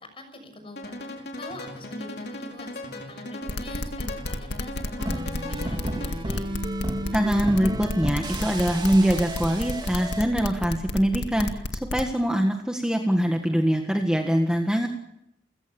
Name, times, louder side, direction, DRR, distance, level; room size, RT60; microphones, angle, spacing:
voice 1, 0.2-6.5, left 1 dB, 30° left, 7 dB, 6.4 m, -45 dB
sound 1, 0.8-6.4, left 1 dB, 60° left, 4.8 m, -38 dB
sound 2, 3.5-12.1, left 1 dB, 85° left, 2.1 m, -31 dB
sound 3, 5.0-10.3, right 1 dB, 25° right, 3.1 m, -32 dB
voice 2, 7.1-14.9, equal, 5° right, 3 dB, 1.6 m, -23 dB
30.0 x 16.0 x 7.0 m, 0.82 s
head